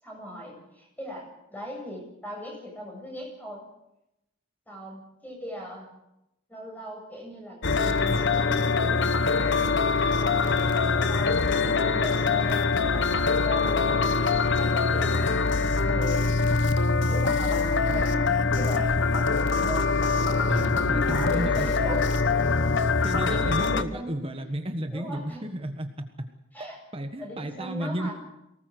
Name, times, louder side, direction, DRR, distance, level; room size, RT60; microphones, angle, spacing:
voice 1, 0.0-3.7 4.7-5.9 6.5-9.7 10.1-16.4 17.1-19.9 20.2-22.1 23.1-24.5 24.9-25.4 26.5-26.8 27.2-28.1, equal, 10° left, 0 dB, 8.0 m, -39 dB
sound 1, 7.6-23.8, left 4 dB, 55° left, 1.0 m, -24 dB
voice 2, 20.5-21.7 23.0-25.9 26.6-26.7 26.9-28.1, right 1 dB, 25° right, 6 dB, 1.5 m, -32 dB
24.0 x 19.5 x 8.0 m, 0.88 s
head